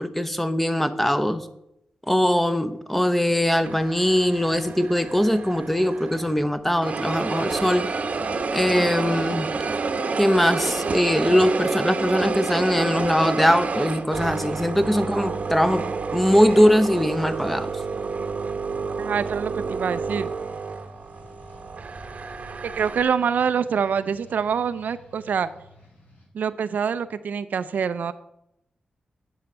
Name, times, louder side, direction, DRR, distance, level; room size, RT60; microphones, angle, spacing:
voice 1, 0.0-1.5 2.1-7.9 8.5-9.5 10.2-15.9 16.1-17.7, equal, 5° left, 10 dB, 0.7 m, -21 dB
sound 1, 3.6-6.4 6.8-23.0, right 4 dB, 55° right, 0.9 m, -29 dB
sound 2, 17.0-26.3, equal, 80° left, 3.1 m, -49 dB
voice 2, 19.0-20.3 22.7-25.5 26.3-28.1, right 7 dB, 80° right, 13 dB, 0.5 m, -25 dB
9.1 x 6.5 x 5.5 m, 0.82 s
cardioid pair, 85°, 3 cm